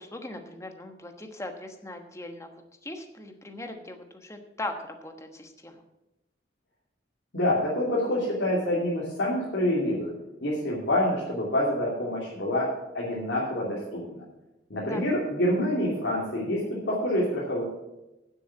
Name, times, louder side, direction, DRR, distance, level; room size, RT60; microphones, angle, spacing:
voice 1, 0.0-2.5 2.8-5.8 14.8-15.1, left 1 dB, 15° left, 5 dB, 1.2 m, -39 dB
voice 2, 7.3-10.1 10.4-12.7 12.9-14.2 14.7-17.6, left 1 dB, 85° left, -6 dB, 2.8 m, -27 dB
9.4 x 8.0 x 7.3 m, 0.97 s
head